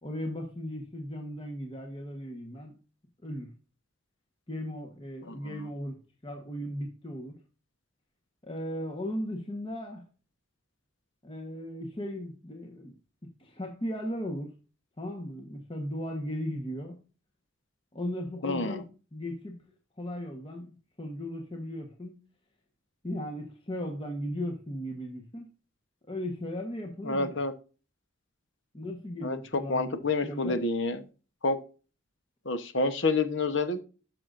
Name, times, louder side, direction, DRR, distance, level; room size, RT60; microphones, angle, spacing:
voice 1, 0.0-2.7 3.2-3.5 4.5-7.4 8.4-10.0 11.2-12.9 13.4-14.5 15.0-17.0 17.9-19.6 20.0-22.2 23.0-25.5 26.1-27.4 28.7-30.6, equal, 25° left, 1.2 m, -37 dB
voice 2, 5.3-5.7 18.4-18.8 27.0-27.5 29.2-31.0 31.4-31.6 32.4-33.8, left 3 dB, 65° left, 1.0 m, -28 dB
12.0 x 6.2 x 2.5 m
head